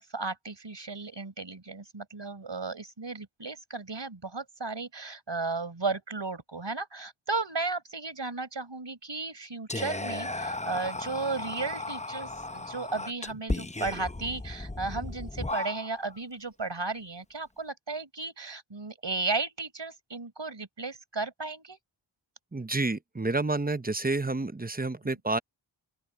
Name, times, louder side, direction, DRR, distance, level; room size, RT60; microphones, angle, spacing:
voice 1, 0.0-21.8, right 3 dB, 60° right, 5.1 m, -34 dB
Whispering, 9.7-16.2, left 2 dB, 15° left, 0.8 m, -35 dB
voice 2, 22.5-25.4, right 2 dB, 20° right, 0.8 m, -29 dB
open air
wide cardioid pair, 55°, 48 cm